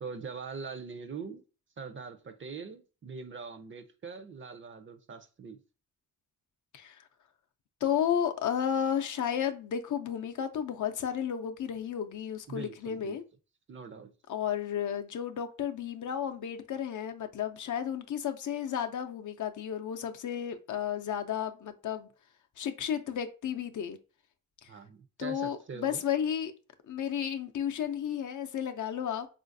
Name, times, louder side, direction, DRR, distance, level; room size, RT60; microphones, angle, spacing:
voice 1, 0.0-1.4 1.8-5.6 12.5-13.2 13.7-14.1 24.7-26.0, right 5 dB, 35° right, 0.5 m, -42 dB
voice 2, 7.8-13.2 14.3-22.1 22.6-24.0 24.6-24.7 25.2-26.5 26.9-29.3, left 9 dB, 65° left, 0.5 m, -33 dB
3.9 x 2.5 x 2.5 m
cardioid pair, 65°, 33 cm